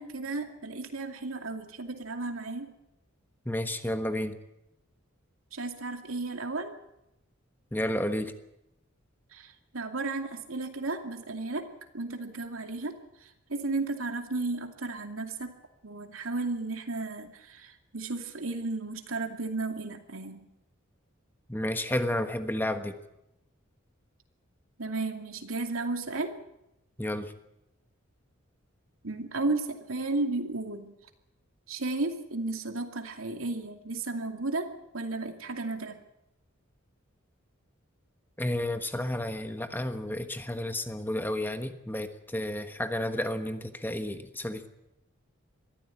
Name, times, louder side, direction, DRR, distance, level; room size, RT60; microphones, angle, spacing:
voice 1, 0.0-2.7 5.5-6.7 9.3-11.7 11.9-12.9 13.2-15.5 15.8-20.4 24.8-26.3 29.0-30.9 31.7-36.0, right 3 dB, 90° right, 5 dB, 2.5 m, -34 dB
voice 2, 3.4-4.4 7.7-8.3 21.5-22.9 27.0-27.3 38.4-44.7, left 1 dB, 10° left, 8 dB, 1.3 m, -31 dB
22.0 x 14.5 x 9.2 m, 0.87 s
head